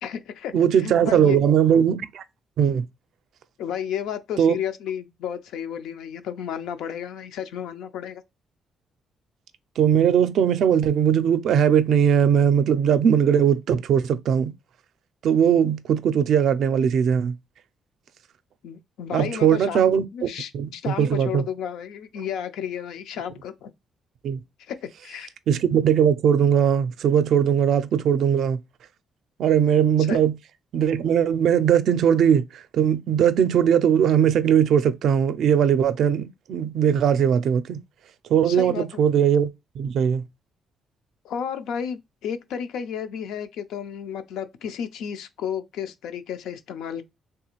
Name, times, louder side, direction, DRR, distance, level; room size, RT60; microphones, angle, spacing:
voice 1, 0.0-1.4 3.6-8.2 18.6-23.7 24.6-25.3 30.0-30.2 38.4-39.0 41.2-47.1, left 8 dB, 85° left, 0.4 m, -32 dB
voice 2, 0.5-2.2 2.6-2.8 4.4-4.5 9.8-14.5 15.2-17.3 19.1-20.3 20.5-20.7 21.0-21.4 24.2-24.4 25.5-28.6 29.4-30.3 30.7-37.8 38.3-39.5 39.8-40.2, right 8 dB, 70° right, 0.4 m, -20 dB
3.4 x 2.4 x 2.9 m
cardioid pair, 90°, 0 cm